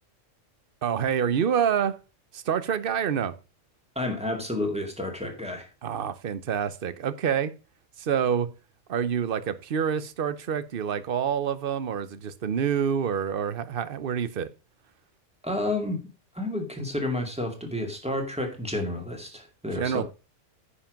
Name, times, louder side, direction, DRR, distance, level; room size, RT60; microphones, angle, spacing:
voice 1, 0.8-2.0 2.3-3.4 5.8-7.5 8.0-8.5 8.9-14.5 19.7-20.0, right 8 dB, 50° right, 0.9 m, -27 dB
voice 2, 4.0-5.7 15.4-16.0 16.4-20.0, left 1 dB, 5° right, 2.1 m, -30 dB
9.8 x 5.9 x 5.1 m
omnidirectional pair, 1.3 m